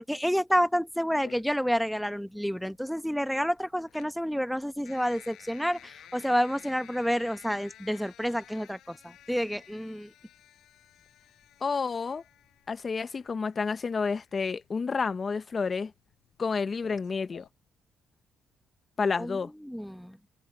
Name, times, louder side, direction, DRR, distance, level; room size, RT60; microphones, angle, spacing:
voice 1, 0.0-9.0 9.3-10.1 19.2-19.3 19.7-20.1, equal, ahead, 1.1 m, -29 dB
sound 1, 1.2-17.5, left 12 dB, 80° left, 5.3 m, -54 dB
voice 2, 11.6-12.2 12.7-15.9 16.4-17.4 19.0-19.5, left 5 dB, 40° left, 1.0 m, -30 dB
open air
cardioid pair, 90°, 0 cm